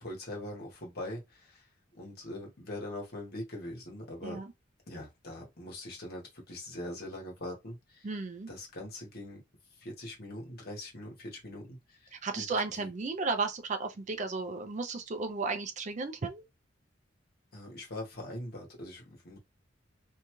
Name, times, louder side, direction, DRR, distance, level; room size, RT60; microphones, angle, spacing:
voice 1, 0.0-1.7 1.9-4.4 4.9-8.1 8.5-9.4 9.8-12.5 12.7-12.9 17.5-19.4, left 1 dB, 50° left, 1.3 m, -42 dB
voice 2, 8.0-8.5 12.1-16.4, right 4 dB, 40° right, 0.4 m, -34 dB
2.7 x 2.3 x 2.9 m
head